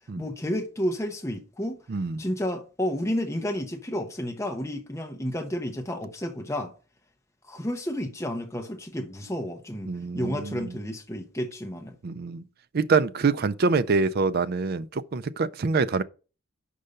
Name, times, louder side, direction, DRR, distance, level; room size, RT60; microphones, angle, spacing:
voice 1, 0.2-1.8 2.2-6.7 7.5-11.9, equal, 15° left, 0.8 m, -31 dB
voice 2, 1.9-2.2 9.9-10.8 12.0-12.4 12.7-16.0, right 4 dB, 45° right, 0.4 m, -25 dB
5.5 x 5.1 x 6.5 m
head